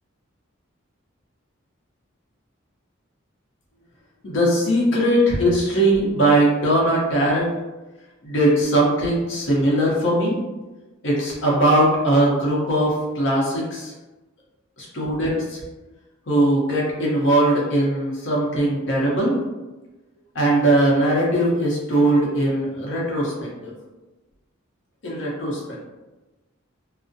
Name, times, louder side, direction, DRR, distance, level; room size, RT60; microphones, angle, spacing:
voice 1, 4.2-7.5 8.2-10.3 11.0-13.9 14.8-15.6 16.3-19.3 20.3-23.3 23.6-23.7 25.0-25.8, right 1 dB, 60° left, -4 dB, 0.7 m, -20 dB
2.4 x 2.0 x 2.6 m, 1.1 s
head